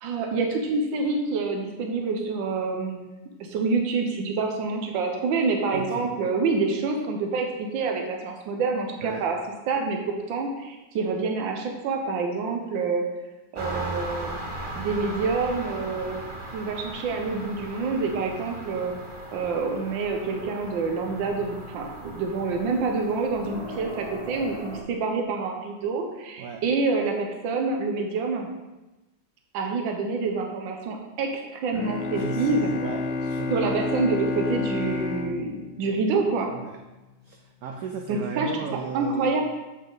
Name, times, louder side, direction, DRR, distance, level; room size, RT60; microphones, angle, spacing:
voice 1, 0.0-3.1 3.4-9.4 9.7-10.0 10.3-13.0 13.5-14.4 14.8-16.2 16.5-18.9 19.3-28.5 29.5-32.7 33.5-36.5 38.1-38.5 38.9-39.4, right 4 dB, 90° right, 2 dB, 1.6 m, -27 dB
voice 2, 5.7-6.1 9.0-9.2 26.4-26.6 32.1-33.8 36.5-36.8 37.2-39.4, right 5 dB, 65° right, 3 dB, 0.9 m, -35 dB
sound 1, 13.6-24.8, right 1 dB, 25° right, 0.7 m, -38 dB
Bowed string instrument, 31.7-36.7, left 4 dB, 85° left, 1.4 m, -30 dB
7.2 x 6.5 x 3.9 m, 1.1 s
omnidirectional pair, 2.0 m